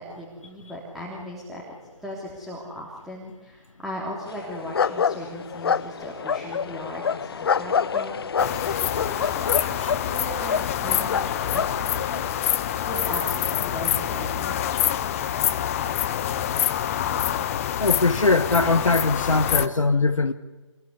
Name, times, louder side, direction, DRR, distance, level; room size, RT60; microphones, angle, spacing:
voice 1, 0.0-1.6 2.0-12.3 12.9-14.6, equal, ahead, 3.4 m, -37 dB
sound 1, 4.3-12.3, left 6 dB, 50° left, 0.8 m, -27 dB
sound 2, 8.4-19.7, left 10 dB, 25° left, 1.2 m, -26 dB
voice 2, 9.6-9.9 17.8-20.3, left 3 dB, 80° left, 1.4 m, -21 dB
27.5 x 21.5 x 10.0 m
figure-of-eight pair, 145°, 16 cm